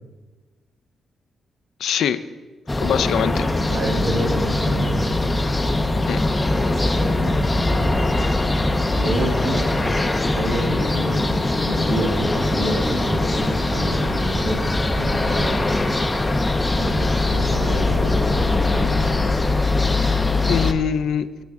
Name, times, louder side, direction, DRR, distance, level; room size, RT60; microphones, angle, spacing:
voice 1, 1.8-2.2 2.8-3.5 6.1-6.2 20.5-21.3, left 8 dB, 75° left, 13 dB, 0.4 m, -22 dB
sound 1, 2.7-20.7, left 2 dB, 15° left, 0.5 m, -21 dB
voice 2, 3.7-5.4 7.0-8.1 8.9-9.6 10.3-11.3 11.6-15.6 16.8-19.0, right 2 dB, 70° right, 0 dB, 2.0 m, -28 dB
14.5 x 7.3 x 3.5 m, 1.3 s
wide cardioid pair, 165°, 0 cm